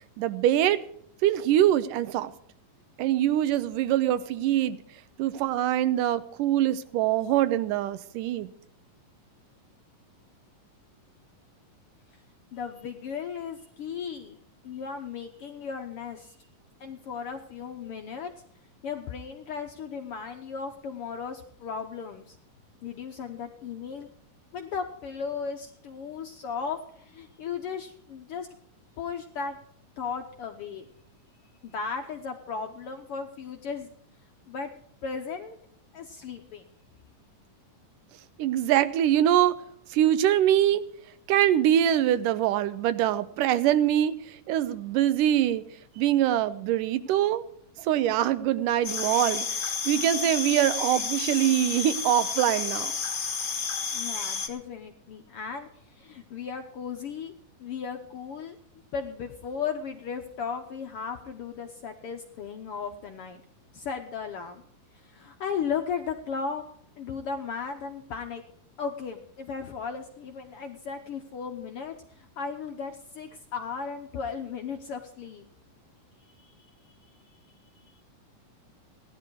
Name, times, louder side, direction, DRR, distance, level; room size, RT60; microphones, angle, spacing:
voice 1, 0.2-0.8 1.2-2.3 3.0-4.8 5.2-8.5 38.4-39.5 39.9-40.8 41.3-44.2 44.5-45.6 46.0-47.4 47.8-49.5 49.9-52.9, right 11 dB, 80° right, 14 dB, 2.4 m, -23 dB
voice 2, 12.5-14.4 14.6-16.4 16.8-18.3 18.8-22.4 22.8-24.1 24.5-28.5 29.0-29.6 30.0-30.9 31.6-33.9 34.5-34.7 35.0-35.6 35.9-36.6 53.9-57.3 57.6-58.6 58.9-63.4 63.7-64.6 65.0-66.6 67.0-68.4 68.8-75.4 76.3-76.5 77.9-78.0, left 6 dB, 75° left, 5 dB, 1.3 m, -36 dB
sound 1, 48.8-54.5, left 5 dB, 40° left, 1.4 m, -31 dB
17.5 x 11.5 x 4.7 m, 0.66 s
omnidirectional pair, 3.9 m